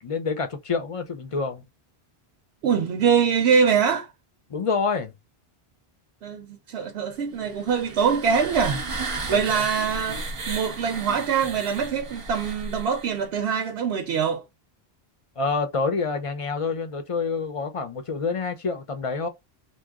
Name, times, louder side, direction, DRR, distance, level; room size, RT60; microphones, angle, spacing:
voice 1, 0.0-1.6 4.5-5.1 9.3-9.6 15.4-19.3, left 4 dB, 35° left, 0.6 m, -27 dB
voice 2, 2.6-4.1 6.2-8.8 9.3-14.4, right 6 dB, 85° right, 0.8 m, -23 dB
sound 1, 7.4-13.2, right 3 dB, 35° right, 0.6 m, -34 dB
2.9 x 2.3 x 3.5 m
omnidirectional pair, 1.0 m